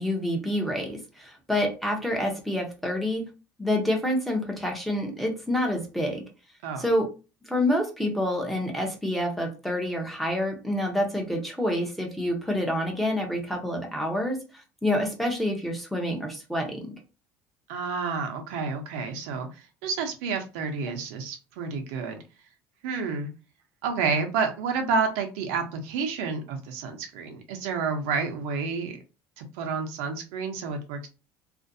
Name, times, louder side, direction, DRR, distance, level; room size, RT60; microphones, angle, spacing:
voice 1, 0.0-3.3 3.6-6.2 6.8-7.1 7.5-16.9, left 1 dB, ahead, 1 dB, 0.6 m, -27 dB
voice 2, 17.7-22.2 22.8-23.3 23.8-29.0 29.4-31.1, right 5 dB, 85° right, 5 dB, 0.6 m, -30 dB
2.5 x 2.1 x 2.6 m, 0.31 s
cardioid pair, 125°, 7 cm